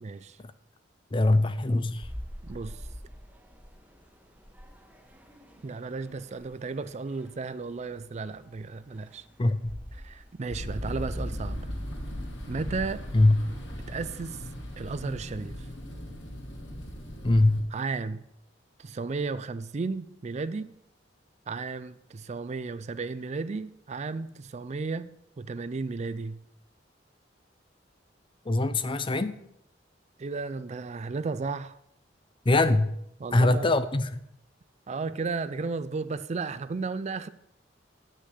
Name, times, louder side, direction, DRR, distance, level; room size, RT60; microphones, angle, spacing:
voice 1, 0.0-0.4 2.4-2.9 5.6-9.3 10.0-11.6 12.5-13.0 13.9-14.4 14.8-15.7 17.7-18.2 18.8-20.7 21.5-25.1 25.4-26.4 30.2-31.8 33.2-33.7 34.9-37.3, right 4 dB, 35° right, 0.4 m, -34 dB
voice 2, 1.1-2.1 9.4-9.7 13.1-13.4 17.2-17.6 28.5-29.4 32.5-32.9 33.3-34.2, left 2 dB, 30° left, 0.5 m, -22 dB
sound 1, 2.0-14.8, equal, 10° right, 1.1 m, -48 dB
sound 2, 10.5-17.6, equal, 70° left, 2.7 m, -37 dB
8.3 x 6.4 x 7.6 m
head